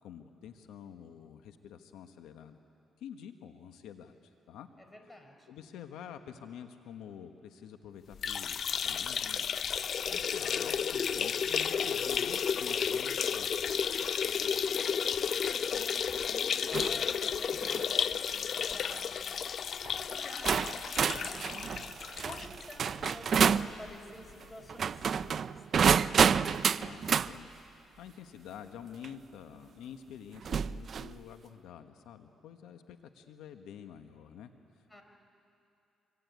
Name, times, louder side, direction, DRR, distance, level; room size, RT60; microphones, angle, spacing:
voice 1, 0.0-2.6 3.0-4.7 5.5-9.5 10.1-13.6 26.8-27.5 28.0-34.5 34.8-35.0, left 8 dB, 85° left, 7 dB, 1.2 m, -48 dB
voice 2, 4.8-5.5 10.1-10.2 14.2-21.9 22.2-26.3 34.9-35.0, left 1 dB, 10° left, 4 dB, 4.7 m, -51 dB
sound 1, 8.1-23.5 23.9-24.0 24.3-24.4 25.4-25.5, left 7 dB, 55° left, 0.5 m, -32 dB
sound 2, 16.7-17.0 17.5-17.9 18.7-19.0 19.8-19.9 20.5-23.7 24.7-27.3 29.0-29.1 30.4-31.1, right 7 dB, 55° right, 0.6 m, -29 dB
25.5 x 24.5 x 9.4 m, 2.7 s
cardioid pair, 90°, 0 cm